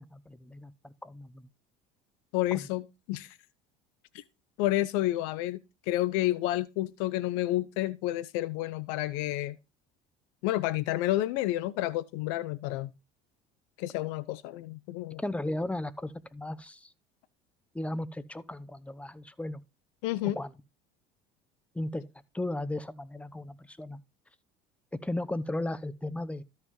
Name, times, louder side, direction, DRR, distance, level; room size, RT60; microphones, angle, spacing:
voice 1, 0.0-1.5 2.5-2.7 15.2-16.9 17.7-19.6 20.2-20.5 21.7-22.0 22.3-24.0 25.0-26.4, left 1 dB, 5° left, 0.8 m, -35 dB
voice 2, 2.3-2.8 3.1-3.4 4.1-4.2 4.6-5.6 5.9-9.5 10.4-12.9 13.8-15.2 20.0-20.4, left 15 dB, 75° left, 0.7 m, -30 dB
13.0 x 5.7 x 3.1 m
hypercardioid pair, 80°, 21 cm